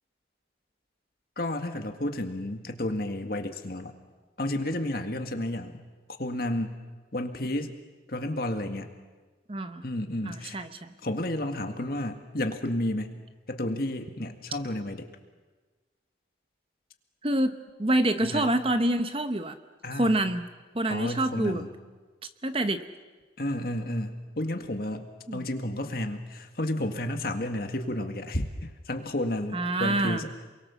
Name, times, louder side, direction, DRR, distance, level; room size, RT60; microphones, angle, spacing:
voice 1, 1.4-3.9 4.4-5.7 6.1-6.8 7.1-7.7 8.1-8.9 9.8-10.6 11.0-13.2 13.5-15.1 18.2-18.5 19.8-20.2 20.9-21.7 23.4-30.3, left 1 dB, 55° left, 5 dB, 2.0 m, -31 dB
voice 2, 9.5-9.8 10.2-10.9 17.2-19.6 20.0-20.5 20.7-21.6 22.4-22.8 25.3-25.4 29.5-30.3, right 1 dB, 30° right, 9 dB, 0.9 m, -26 dB
28.5 x 23.0 x 7.2 m, 1.3 s
head